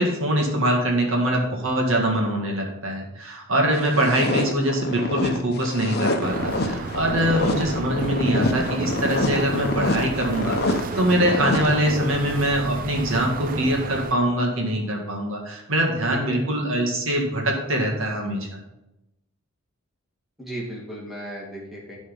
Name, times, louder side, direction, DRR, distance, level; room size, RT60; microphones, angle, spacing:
voice 1, 0.0-18.5, right 1 dB, 70° right, 0 dB, 2.0 m, -23 dB
sound 1, 3.8-12.4, left 2 dB, 50° left, 0.8 m, -27 dB
sound 2, 6.2-14.1, right 4 dB, 40° right, 0.4 m, -33 dB
voice 2, 16.1-16.5 20.4-22.0, right 1 dB, ahead, -4 dB, 2.2 m, -36 dB
12.0 x 4.3 x 5.3 m, 0.94 s
head